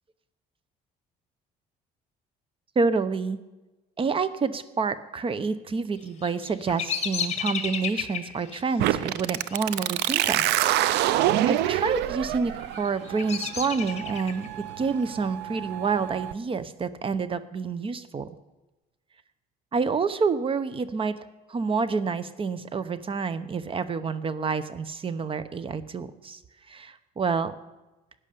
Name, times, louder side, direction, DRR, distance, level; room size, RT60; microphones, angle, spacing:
voice 1, 2.8-3.4 4.0-10.5 11.4-14.5 14.8-18.3 19.7-21.2 21.5-26.4 26.7-27.6, right 5 dB, 30° right, 14 dB, 0.8 m, -28 dB
Bird vocalization bird call bird song, 6.0-11.1 11.3-11.9 12.5-14.5, left 8 dB, 40° left, 1.7 m, -34 dB
sound 1, 8.8-16.3, right 13 dB, 80° right, 0.5 m, -27 dB
13.0 x 9.8 x 6.8 m, 1.1 s
cardioid pair, 110°, 17 cm